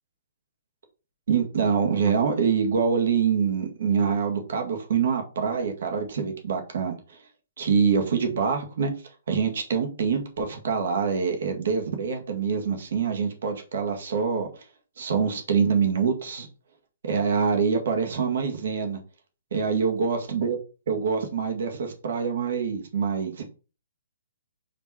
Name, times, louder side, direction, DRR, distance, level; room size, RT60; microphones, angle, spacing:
voice 1, 1.3-7.0 7.6-8.9 9.3-14.5 15.0-16.5 17.0-19.0 19.5-20.6 20.9-23.4, right 6 dB, 55° right, 1.8 m, -25 dB
5.2 x 4.6 x 4.3 m
hypercardioid pair, 170°, 0 cm